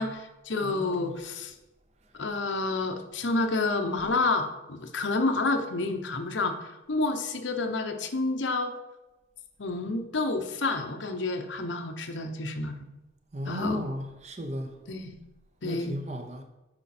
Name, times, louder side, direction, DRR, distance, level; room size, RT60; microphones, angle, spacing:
voice 1, 0.0-1.5 2.1-8.7 9.6-12.7 13.5-13.9 14.9-15.2 15.6-16.0, left 3 dB, 85° left, 0.9 m, -29 dB
voice 2, 0.6-1.1 13.3-14.7 15.6-16.4, equal, 35° right, 0.8 m, -34 dB
8.8 x 5.2 x 4.3 m
head